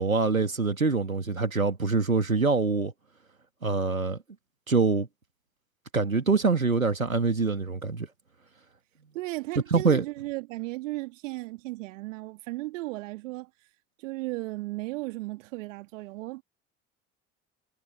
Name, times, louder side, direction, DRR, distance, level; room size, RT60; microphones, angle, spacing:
voice 1, 0.0-2.9 3.6-4.2 4.7-5.1 5.9-8.1 9.7-10.0, right 4 dB, 90° right, 2.3 m, -24 dB
voice 2, 9.1-13.5 14.0-16.4, right 20 dB, 65° right, 2.5 m, -35 dB
figure-of-eight pair, 60°, 40 cm